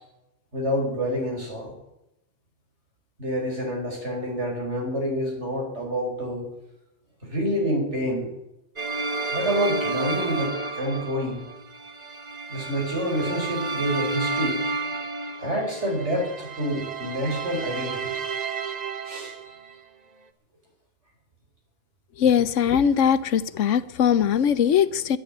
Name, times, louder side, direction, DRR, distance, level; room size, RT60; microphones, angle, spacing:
voice 1, 0.5-1.7 3.2-6.5 7.2-8.3 9.2-11.4 12.5-14.6 15.4-18.1 19.1-19.3, equal, 65° right, 5.5 m, -27 dB
sound 1, 8.8-19.7, right 3 dB, 35° right, 1.0 m, -31 dB
voice 2, 22.2-25.2, left 8 dB, 85° left, 1.1 m, -21 dB
11.0 x 10.5 x 9.9 m
omnidirectional pair, 1.3 m